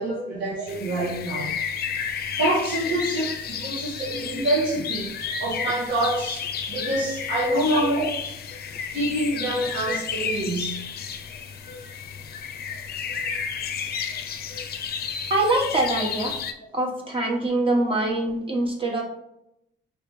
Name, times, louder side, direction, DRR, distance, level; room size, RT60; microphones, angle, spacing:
voice 1, 0.0-1.6 2.4-5.1 5.4-8.0 8.9-10.8, right 1 dB, 65° right, -7 dB, 1.6 m, -26 dB
sound 1, 0.7-16.5, left 6 dB, 50° left, 0.5 m, -32 dB
voice 2, 15.3-16.3 16.7-19.0, right 2 dB, 25° right, 0 dB, 1.2 m, -24 dB
5.1 x 3.2 x 3.1 m, 0.79 s
cardioid pair, 90°, 20 cm